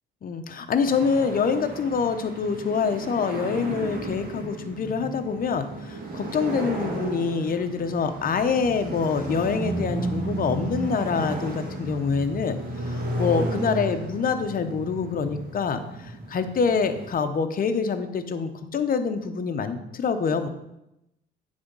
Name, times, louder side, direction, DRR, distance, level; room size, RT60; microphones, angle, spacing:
voice 1, 0.2-12.6 12.9-20.5, left 5 dB, 45° left, 8 dB, 0.7 m, -26 dB
sound 1, 0.8-17.1, right 2 dB, 50° right, 1.8 m, -33 dB
7.8 x 3.5 x 5.3 m, 0.87 s
cardioid pair, 90°, 20 cm